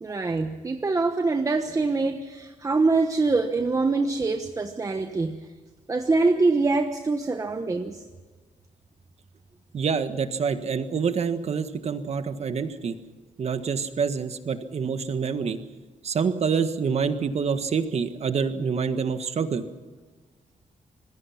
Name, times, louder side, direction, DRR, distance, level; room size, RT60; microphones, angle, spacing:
voice 1, 0.0-5.4 5.9-8.0, right 3 dB, 25° right, 6 dB, 1.1 m, -24 dB
voice 2, 9.7-13.0 13.4-15.6 16.0-19.6, right 6 dB, 50° right, 9 dB, 1.6 m, -26 dB
26.0 x 20.5 x 5.8 m, 1.3 s
wide cardioid pair, 140°, 14 cm